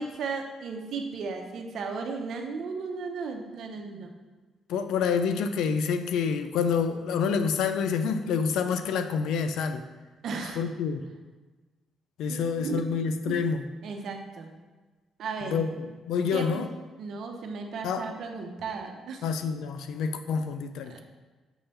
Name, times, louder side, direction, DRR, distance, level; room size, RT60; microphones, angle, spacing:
voice 1, 0.0-4.1 10.2-10.6 12.3-12.8 13.3-13.4 13.8-14.5 15.2-15.6 16.3-16.7 17.0-19.2 20.9-21.0, right 4 dB, 70° right, 3 dB, 0.9 m, -35 dB
voice 2, 4.7-9.8 10.6-11.1 12.2-13.6 15.4-16.7 17.8-18.1 19.2-21.0, left 6 dB, 85° left, 9 dB, 0.5 m, -28 dB
7.2 x 3.3 x 5.6 m, 1.3 s
cardioid pair, 90°, 0 cm